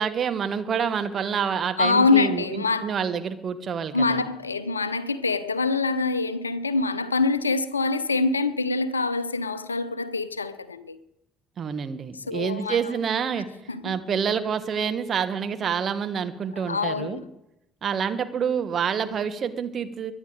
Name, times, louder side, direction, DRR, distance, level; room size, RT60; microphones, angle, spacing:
voice 1, 0.0-4.3 11.6-13.5 13.8-17.2 17.8-20.1, right 7 dB, 45° right, 1.5 m, -27 dB
voice 2, 1.8-2.9 3.9-11.0 12.1-12.8 13.7-13.9 16.7-17.2, left 3 dB, 85° left, 0.6 m, -25 dB
23.0 x 9.9 x 5.0 m
figure-of-eight pair, 50°, 0 cm